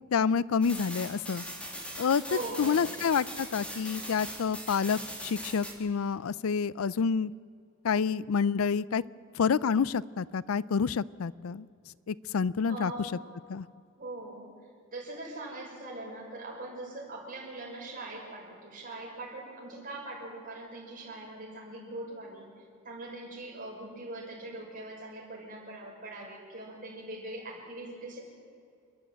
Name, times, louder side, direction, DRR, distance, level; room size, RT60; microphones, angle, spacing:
voice 1, 0.1-1.4 2.0-2.2 2.6-7.3 7.8-9.0 9.4-11.7 12.1-12.9 13.5-13.7, left 6 dB, 80° left, 20 dB, 0.4 m, -28 dB
sound 1, 0.6-5.7, equal, 5° left, 2.9 m, -41 dB
voice 2, 2.2-3.0 12.7-13.1 14.0-14.5 14.9-22.5 22.8-28.2, right 2 dB, 40° right, -2 dB, 6.1 m, -41 dB
28.5 x 11.0 x 9.1 m, 2.4 s
head